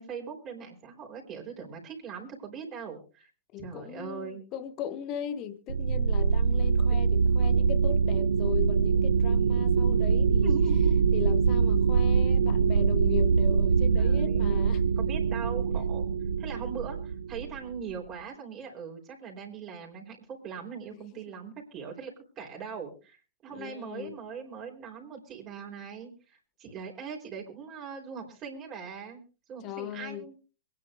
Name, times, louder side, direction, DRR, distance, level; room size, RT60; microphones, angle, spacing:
voice 1, 0.0-3.3 3.6-4.4 6.9-7.0 10.4-11.1 14.0-16.1 16.4-29.2 29.5-30.3, right 6 dB, 30° right, 3.7 m, -41 dB
voice 2, 3.5-10.6 11.1-15.1 20.9-21.1 23.5-24.2 29.6-30.2, left 10 dB, 35° left, 1.4 m, -38 dB
sound 1, 5.7-17.9, right 5 dB, 75° right, 0.6 m, -24 dB
26.0 x 10.0 x 2.5 m
figure-of-eight pair, 105°, 0 cm